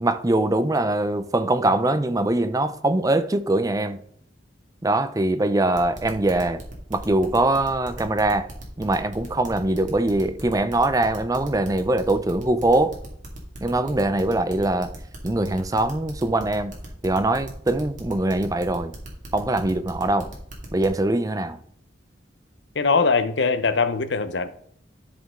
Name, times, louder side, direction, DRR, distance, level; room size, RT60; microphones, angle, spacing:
voice 1, 0.0-4.0 4.8-6.6 6.9-8.5 8.8-12.9 13.6-14.9 15.2-16.7 17.0-18.9 19.3-20.3 20.7-21.6, right 2 dB, 20° right, 0.5 m, -22 dB
sound 1, 5.7-20.9, right 1 dB, 45° right, 2.3 m, -39 dB
voice 2, 22.7-24.5, left 4 dB, 80° left, 0.8 m, -21 dB
12.5 x 5.3 x 3.7 m
head